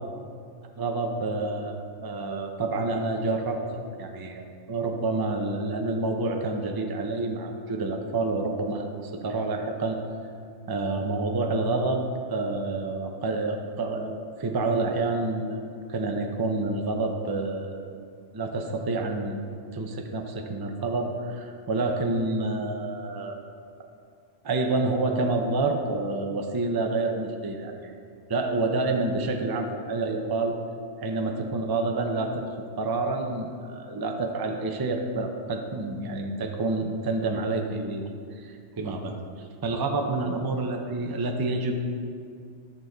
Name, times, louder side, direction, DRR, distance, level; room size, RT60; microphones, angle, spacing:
voice 1, 0.8-10.0 10.7-12.0 12.3-17.8 18.3-19.4 19.7-23.4 24.4-28.0 28.3-30.5 31.0-32.5 32.8-38.0 38.3-41.8, right 2 dB, 25° right, 3 dB, 0.5 m, -28 dB
11.0 x 6.3 x 3.9 m, 2.3 s
omnidirectional pair, 1.3 m